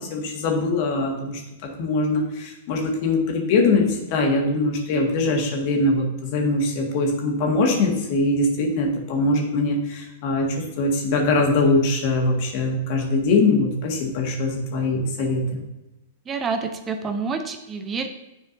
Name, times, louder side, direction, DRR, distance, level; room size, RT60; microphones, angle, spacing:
voice 1, 0.0-1.4 1.8-15.6, left 2 dB, 50° left, 1 dB, 1.6 m, -22 dB
voice 2, 16.3-18.1, right 4 dB, 25° right, 7 dB, 0.6 m, -28 dB
9.8 x 4.4 x 2.7 m, 0.94 s
hypercardioid pair, 105°, 0 cm